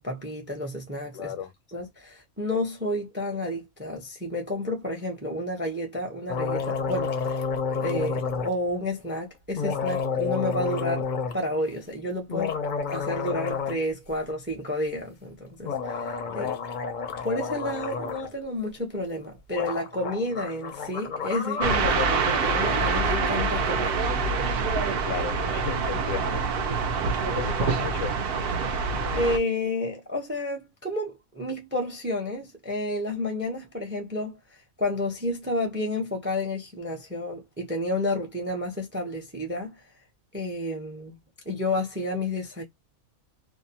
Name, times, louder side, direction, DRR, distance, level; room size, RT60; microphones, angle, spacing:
voice 1, 0.0-1.3 1.7-7.4 7.7-12.5 12.9-16.5 17.2-24.0 29.1-34.4 34.8-39.8 40.3-41.2 41.5-42.6, left 1 dB, 15° right, 0.4 m, -30 dB
voice 2, 1.1-1.5 16.2-16.6 25.1-26.4 27.3-28.2, left 8 dB, 80° left, 1.0 m, -34 dB
sound 1, 6.3-8.5 9.6-11.4 12.2-13.8 14.1-14.2 15.6-18.3 19.2-19.3 19.5-22.8, left 5 dB, 50° left, 0.6 m, -30 dB
sound 2, 21.6-29.4, right 4 dB, 65° right, 0.6 m, -26 dB
2.6 x 2.1 x 2.7 m
omnidirectional pair, 1.4 m